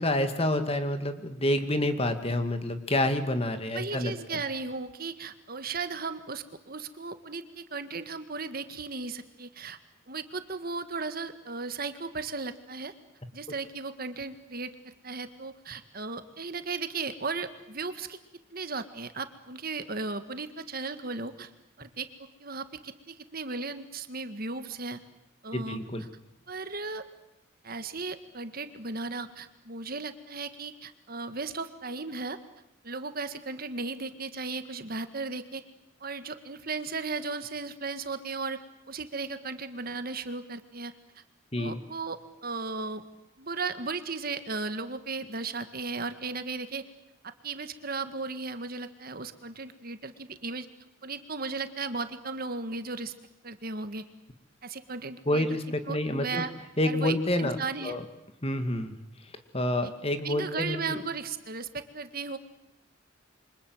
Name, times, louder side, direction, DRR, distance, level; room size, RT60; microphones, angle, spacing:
voice 1, 0.0-4.4 25.5-26.0 41.5-41.8 55.3-56.4 56.8-57.6 57.8-58.0 58.4-59.0 59.5-61.0, left 1 dB, 30° left, 9 dB, 2.1 m, -28 dB
voice 2, 3.7-9.8 10.1-12.9 13.3-18.2 18.5-21.5 21.8-22.1 22.4-25.0 25.4-25.8 26.5-27.1 27.6-32.4 32.8-35.6 36.0-38.6 38.9-40.9 41.6-43.0 43.4-46.8 47.2-50.7 51.0-53.1 53.4-54.0 54.6-55.6 55.9-56.5 56.8-58.0 59.8-59.9 60.2-62.4, right 4 dB, 50° right, 10 dB, 1.8 m, -36 dB
28.0 x 25.0 x 8.0 m, 0.85 s
head